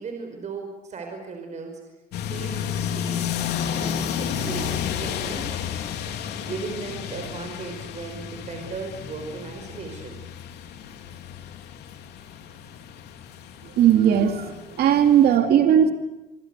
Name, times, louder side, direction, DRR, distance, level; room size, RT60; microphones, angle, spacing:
voice 1, 0.0-1.8 2.2-3.3 3.7-5.6 6.3-10.2, right 4 dB, 45° right, 4 dB, 5.4 m, -37 dB
sound 1, 2.1-15.3, left 8 dB, 75° left, 3.3 m, -32 dB
voice 2, 13.8-15.9, right 9 dB, 70° right, 6 dB, 2.5 m, -18 dB
28.0 x 24.5 x 8.2 m, 1.0 s
cardioid pair, 110°, 17 cm